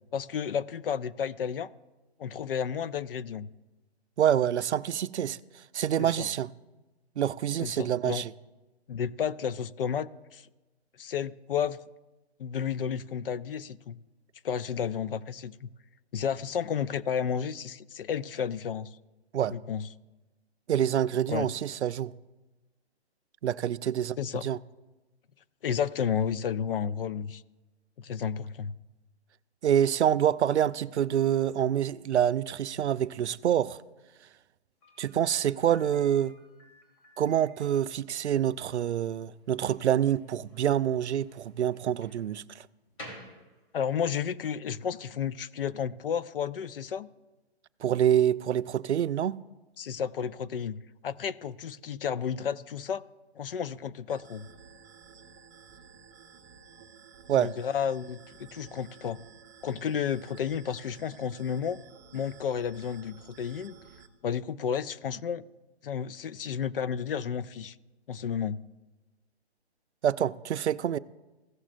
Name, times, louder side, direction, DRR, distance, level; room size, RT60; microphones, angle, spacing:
voice 1, 0.1-1.7 2.2-3.5 6.0-6.3 7.6-8.2 8.9-10.4 11.0-11.8 12.4-14.0 14.4-15.7 16.1-18.9 19.5-19.9 21.3-21.5 24.2-24.4 25.6-27.4 28.0-28.8 43.7-47.1 49.8-53.0 53.4-54.5 57.4-59.2 59.6-61.8 62.1-63.7 64.2-65.4 65.8-67.8 68.1-68.6, left 7 dB, 55° left, 0.5 m, -32 dB
voice 2, 4.2-5.4 5.7-6.5 7.2-8.3 19.3-19.5 20.7-22.1 23.4-24.6 29.6-33.8 35.0-36.3 37.2-42.7 47.8-49.4 57.3-57.5 70.0-71.0, right 10 dB, 90° right, 0.5 m, -26 dB
Slam, 34.8-44.2, equal, 30° left, 2.4 m, -53 dB
sound 1, 54.1-64.1, right 6 dB, 15° right, 0.7 m, -53 dB
16.0 x 7.2 x 2.5 m
hypercardioid pair, 150°, 33 cm